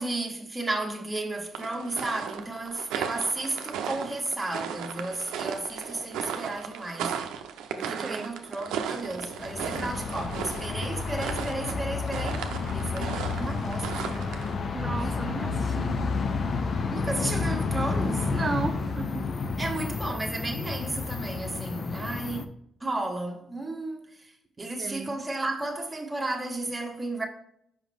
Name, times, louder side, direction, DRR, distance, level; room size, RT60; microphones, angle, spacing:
voice 1, 0.0-7.3 7.8-12.5 12.7-14.2 15.0-15.1 16.9-18.4 19.6-22.4 22.8-27.3, right 2 dB, 15° right, 1.4 m, -33 dB
sound 1, 1.5-14.5, right 8 dB, 90° right, 0.6 m, -36 dB
sound 2, 9.2-22.5, left 4 dB, 50° left, 0.6 m, -30 dB
voice 2, 14.7-15.9 18.3-19.3 24.8-25.2, right 4 dB, 35° right, 0.4 m, -34 dB
5.5 x 5.2 x 3.4 m
cardioid pair, 90°, 0 cm